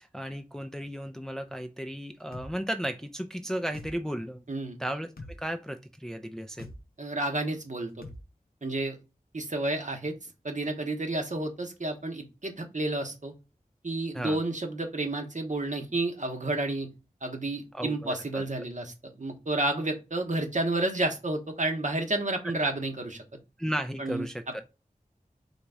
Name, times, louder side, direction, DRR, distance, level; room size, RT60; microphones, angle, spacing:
voice 1, 0.0-4.4 4.8-5.1 5.4-6.7 14.1-14.4 17.7-18.4 23.6-24.6, equal, 5° left, 7 dB, 0.4 m, -34 dB
sound 1, 2.3-2.5 3.7-3.9 5.2-5.4 6.6-6.8 8.0-8.2, left 2 dB, 85° left, 0.6 m, -42 dB
voice 2, 7.0-8.1 8.6-9.0 9.3-10.1 10.4-13.3 13.8-16.9 17.2-23.2 24.0-24.3, right 2 dB, 55° right, 4 dB, 1.0 m, -30 dB
4.0 x 3.0 x 3.5 m, 0.29 s
wide cardioid pair, 55°, 15 cm